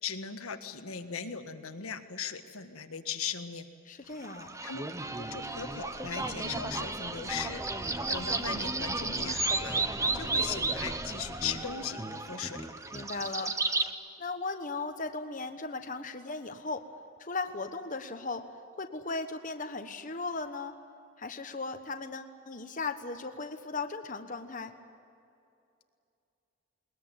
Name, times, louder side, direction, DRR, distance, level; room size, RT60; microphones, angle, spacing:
voice 1, 0.0-3.7 4.6-4.8 5.1-9.8 10.1-12.6, left 7 dB, 80° left, 7 dB, 1.6 m, -38 dB
voice 2, 3.9-4.6 12.9-13.5 14.2-16.9 17.2-18.5 18.8-20.7 21.2-24.8, left 3 dB, 35° left, 7 dB, 1.2 m, -37 dB
sound 1, 4.2-13.9, right 3 dB, 15° right, 0.9 m, -33 dB
21.0 x 21.0 x 9.2 m, 2.6 s
head